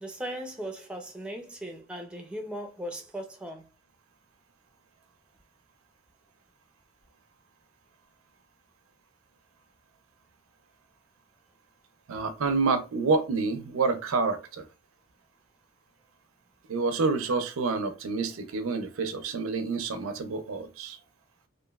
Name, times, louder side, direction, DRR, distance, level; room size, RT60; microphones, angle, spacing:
voice 1, 0.0-3.6, right 1 dB, 5° right, 0.4 m, -38 dB
voice 2, 12.1-14.6 16.7-21.0, right 4 dB, 85° right, 0.5 m, -28 dB
3.0 x 2.5 x 2.3 m
head